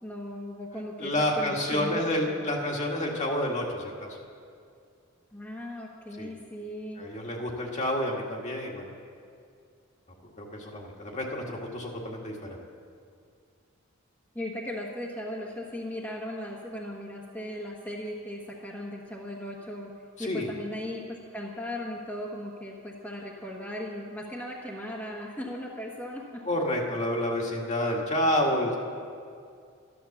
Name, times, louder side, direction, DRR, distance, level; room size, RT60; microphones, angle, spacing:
voice 1, 0.0-2.0 2.3-2.4 5.3-7.0 14.3-19.9 20.2-26.4, left 1 dB, 10° left, -3 dB, 1.3 m, -37 dB
voice 2, 1.0-4.2 6.2-6.3 7.0-9.0 10.4-12.6 20.2-20.5 26.5-28.7, left 1 dB, 35° left, -1 dB, 1.8 m, -29 dB
12.5 x 11.5 x 7.2 m, 2.3 s
head